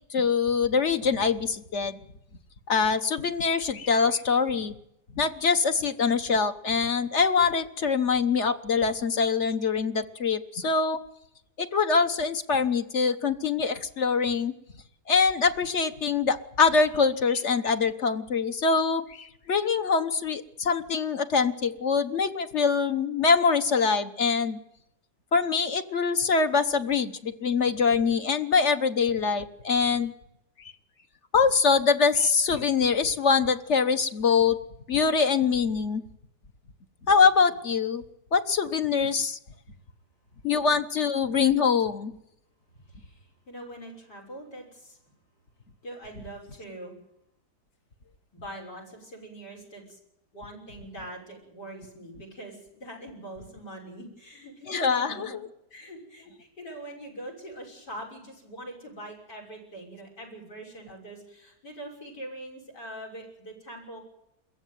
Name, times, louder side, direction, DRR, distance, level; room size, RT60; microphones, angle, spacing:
voice 1, 0.1-2.0 2.7-4.7 5.1-11.0 11.6-14.5 15.1-24.6 25.3-30.1 31.3-34.6 34.9-36.0 37.1-38.0 38.3-39.4 40.4-42.2 54.7-55.5, left 5 dB, 45° left, 9 dB, 1.4 m, -24 dB
voice 2, 42.9-45.0 45.8-47.0 48.3-50.0 50.3-55.4 55.7-64.0, right 1 dB, 85° left, 3 dB, 7.0 m, -43 dB
22.0 x 15.5 x 9.3 m, 0.80 s
omnidirectional pair, 1.8 m